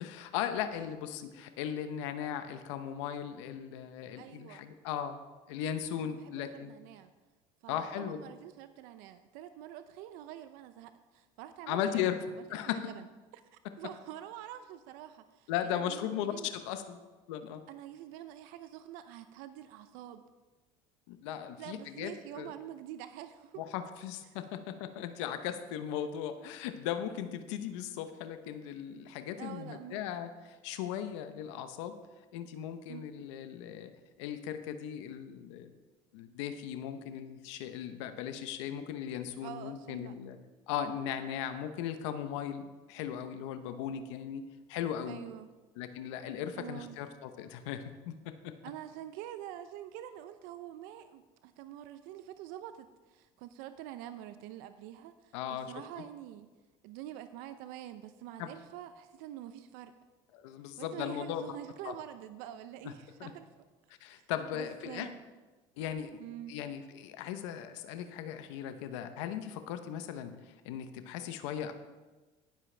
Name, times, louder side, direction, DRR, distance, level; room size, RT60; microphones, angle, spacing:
voice 1, 0.0-5.2 5.5-6.7 7.7-8.2 11.7-12.2 12.5-12.9 15.5-17.0 17.3-17.6 21.1-22.5 23.6-31.9 32.3-33.9 34.2-35.7 36.1-40.4 40.7-44.4 44.7-45.2 45.8-48.5 55.3-55.7 58.4-58.5 60.3-61.6 61.8-61.9 63.2-63.3 64.0-65.1 65.8-66.1 66.5-71.7, left 9 dB, 90° left, 9 dB, 0.9 m, -37 dB
voice 2, 4.2-4.7 6.0-7.1 7.6-13.1 13.8-16.5 17.7-20.2 21.3-23.6 24.3-24.4 29.4-30.0 32.9-33.0 39.4-40.1 45.1-45.5 46.6-47.0 48.6-56.5 56.8-59.9 60.8-63.5 64.2-65.2 66.2-66.5, right 12 dB, 80° right, 11 dB, 0.6 m, -46 dB
17.5 x 7.6 x 3.4 m, 1.2 s
supercardioid pair, 105°, 15 cm